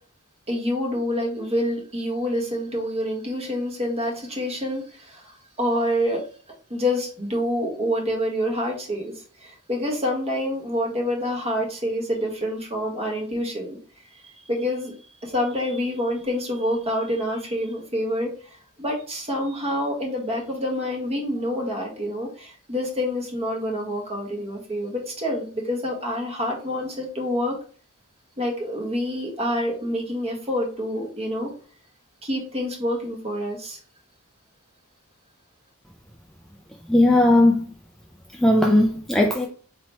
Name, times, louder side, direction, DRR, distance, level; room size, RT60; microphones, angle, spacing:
voice 1, 0.5-6.2 6.7-13.8 14.1-14.9 15.2-27.6 28.4-31.5 32.2-33.8, equal, 30° right, 1.2 m, -27 dB
voice 2, 36.9-37.7 38.4-39.5, left 1 dB, ahead, 0.3 m, -17 dB
4.3 x 2.9 x 3.3 m
head